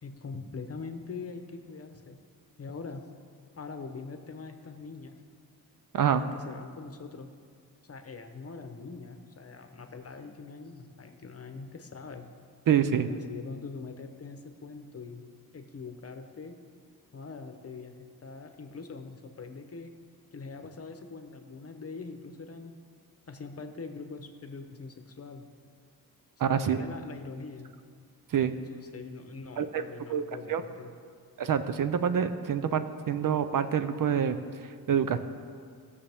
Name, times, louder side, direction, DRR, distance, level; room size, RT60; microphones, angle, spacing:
voice 1, 0.0-2.2 2.6-3.1 3.6-5.1 6.1-7.3 7.8-12.3 12.9-15.2 15.5-16.6 17.1-17.9 18.2-19.9 20.3-22.8 23.3-25.5 26.4-27.7 28.7-30.9, left 4 dB, 40° left, 7 dB, 0.9 m, -43 dB
voice 2, 12.7-13.1 26.4-26.8 28.3-28.5 29.6-29.8 30.1-30.2 30.5-30.6 31.4-34.4 34.9-35.2, right 8 dB, 60° right, 11 dB, 0.6 m, -26 dB
18.5 x 6.9 x 3.5 m, 2.1 s
wide cardioid pair, 125°, 37 cm